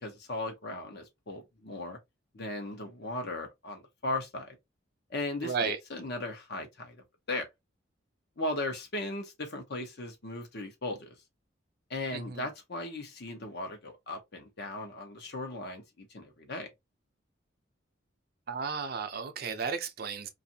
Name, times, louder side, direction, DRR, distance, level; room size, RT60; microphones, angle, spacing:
voice 1, 0.0-2.0 2.3-4.6 5.1-7.5 8.4-11.2 11.9-16.7, left 2 dB, 55° left, 0.8 m, -37 dB
voice 2, 5.4-5.8 12.1-12.5 18.5-20.3, right 5 dB, 50° right, 0.5 m, -33 dB
2.6 x 2.5 x 2.7 m
head